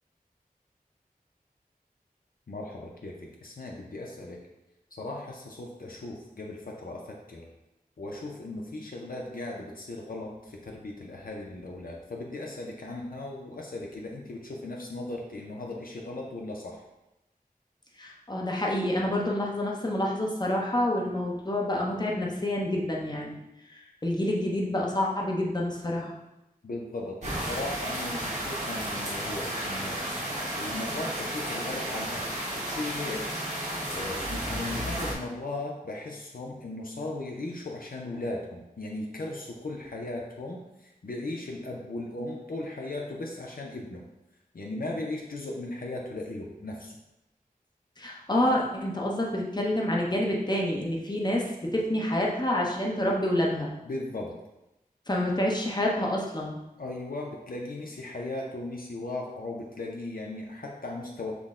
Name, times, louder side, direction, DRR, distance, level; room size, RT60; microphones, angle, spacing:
voice 1, 2.5-4.4 4.9-7.5 8.0-16.8 26.6-30.0 30.5-33.6 33.9-44.1 44.5-47.0 53.8-54.4 56.8-61.3, left 2 dB, 70° left, -1 dB, 0.6 m, -37 dB
voice 2, 18.0-23.4 23.7-26.1 48.0-53.7 55.1-56.6, left 1 dB, 30° left, -2 dB, 0.8 m, -28 dB
sound 1, 27.2-35.1, right 1 dB, 50° right, 1.1 m, -33 dB
6.0 x 2.2 x 3.6 m, 0.94 s
wide cardioid pair, 55°, 15 cm